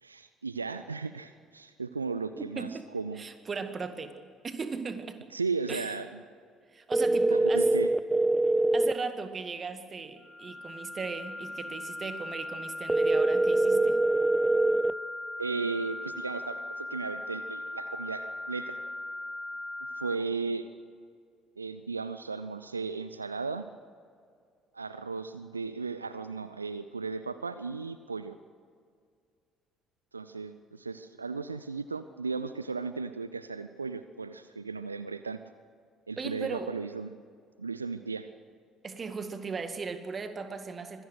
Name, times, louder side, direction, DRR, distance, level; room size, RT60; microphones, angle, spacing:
voice 1, 0.0-3.2 5.3-6.2 7.3-7.9 15.4-18.8 20.0-20.7 21.6-23.7 24.7-28.4 30.1-35.4 36.1-37.1 37.6-38.3, right 4 dB, 85° right, 12 dB, 0.4 m, -35 dB
voice 2, 2.6-2.9 3.2-4.2 4.4-5.2 5.7-5.9 6.7-7.7 8.7-14.0 36.2-36.7 38.8-41.0, right 4 dB, 30° right, 9 dB, 1.9 m, -37 dB
sound 1, 6.9-8.9 12.9-14.9, right 2 dB, 10° right, 0.6 m, -24 dB
sound 2, 10.2-20.1, left 1 dB, 20° left, 0.8 m, -39 dB
25.0 x 18.0 x 6.5 m, 2.2 s
figure-of-eight pair, 50°, 0 cm